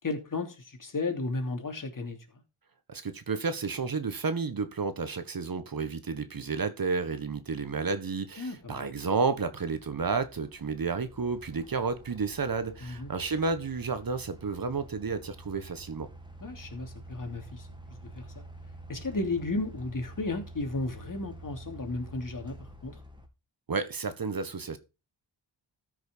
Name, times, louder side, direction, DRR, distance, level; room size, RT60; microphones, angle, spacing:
voice 1, 0.0-2.2 8.4-8.8 12.8-13.1 16.4-18.4 18.9-23.0, left 3 dB, 45° left, 3.1 m, -34 dB
voice 2, 2.9-16.1 23.7-24.8, right 4 dB, 45° right, 1.6 m, -31 dB
sound 1, 8.3-23.3, right 1 dB, 10° right, 2.5 m, -48 dB
13.5 x 6.3 x 4.6 m
cardioid pair, 80°, 46 cm